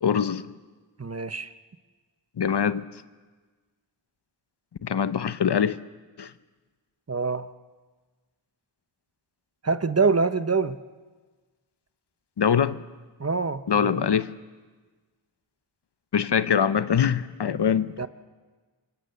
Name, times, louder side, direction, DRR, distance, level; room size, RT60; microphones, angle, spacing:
voice 1, 0.0-0.5 2.4-3.0 4.8-5.8 6.2-6.3 12.4-12.8 13.7-14.3 16.1-17.9, left 7 dB, 70° left, 0.9 m, -23 dB
voice 2, 1.0-1.5 7.1-7.5 9.6-10.8 13.2-14.0 18.0-18.1, right 4 dB, 35° right, 1.1 m, -25 dB
27.0 x 23.5 x 7.1 m
cardioid pair, 55°, 43 cm